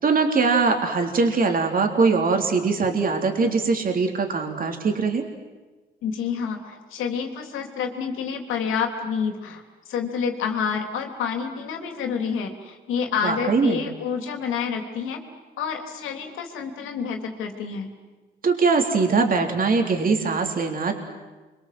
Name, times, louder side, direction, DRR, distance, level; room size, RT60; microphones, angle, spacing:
voice 1, 0.0-5.2 13.2-13.8 18.4-20.9, right 4 dB, 45° right, 4 dB, 3.5 m, -21 dB
voice 2, 6.0-9.6 9.9-15.2 15.6-17.9, left 6 dB, 90° left, 5 dB, 3.4 m, -28 dB
28.5 x 24.0 x 7.8 m, 1.2 s
cardioid pair, 90°, 20 cm